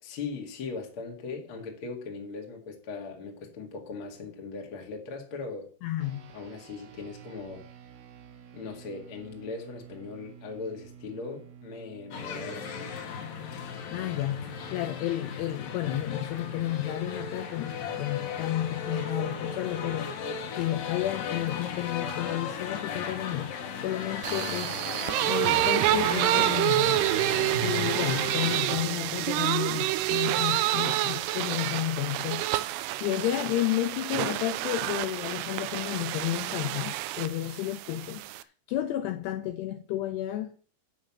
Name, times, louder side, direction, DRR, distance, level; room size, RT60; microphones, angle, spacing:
voice 1, 0.0-5.7 6.3-7.7 8.5-13.0, left 4 dB, 45° left, 1.9 m, -39 dB
voice 2, 5.8-6.3 13.9-24.8 25.3-40.5, left 13 dB, 80° left, 2.4 m, -32 dB
sound 1, 6.0-15.6, right 8 dB, 70° right, 3.3 m, -52 dB
sound 2, 12.1-28.6, left 6 dB, 60° left, 2.5 m, -36 dB
sound 3, 24.2-38.4, right 16 dB, 85° right, 2.4 m, -28 dB
9.2 x 6.4 x 7.2 m
omnidirectional pair, 5.3 m